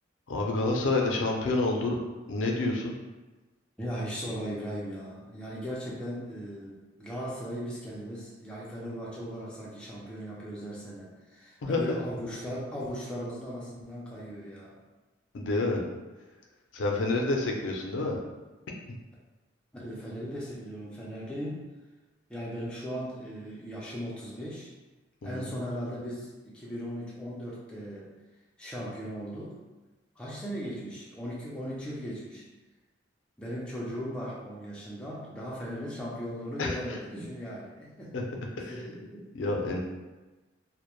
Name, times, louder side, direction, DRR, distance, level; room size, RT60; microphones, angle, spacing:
voice 1, 0.3-2.0 2.3-2.9 11.6-12.0 15.3-15.8 16.7-18.2 25.2-25.5 36.6-36.8 38.1-38.2 38.6-38.8 39.3-39.8, left 2 dB, 80° left, 0 dB, 0.4 m, -28 dB
voice 2, 3.8-14.8 16.9-17.0 19.7-21.7 22.3-24.7 25.2-28.1 28.6-29.6 30.2-32.5 33.4-38.2 38.5-39.3, equal, 5° left, -6 dB, 0.4 m, -38 dB
2.1 x 2.1 x 2.9 m, 1.2 s
head